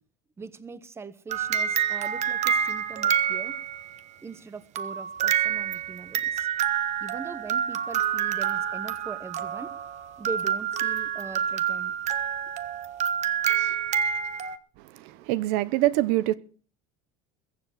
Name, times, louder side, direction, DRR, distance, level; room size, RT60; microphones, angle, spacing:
voice 1, 0.4-3.6 4.2-6.5 7.0-9.8 10.2-12.0 13.4-13.5, right 4 dB, 15° right, 0.9 m, -41 dB
sound 1, 1.3-4.0 4.8-14.6, right 9 dB, 40° right, 1.2 m, -27 dB
voice 2, 14.9-16.3, right 16 dB, 70° right, 0.9 m, -24 dB
22.0 x 7.5 x 6.3 m
cardioid pair, 145°, 18 cm